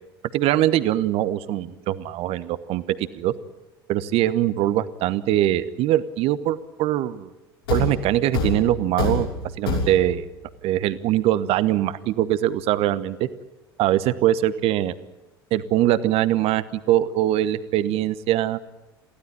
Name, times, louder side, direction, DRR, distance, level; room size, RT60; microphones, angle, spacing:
voice 1, 0.3-3.3 3.9-7.3 7.7-9.3 9.6-10.2 10.6-13.3 13.8-14.9 15.5-18.6, right 13 dB, 50° right, 15 dB, 1.1 m, -22 dB
Thump thud, 7.7-10.3, left 3 dB, 80° left, 6.2 m, -26 dB
23.5 x 15.5 x 9.9 m, 1.1 s
figure-of-eight pair, 70°, 13 cm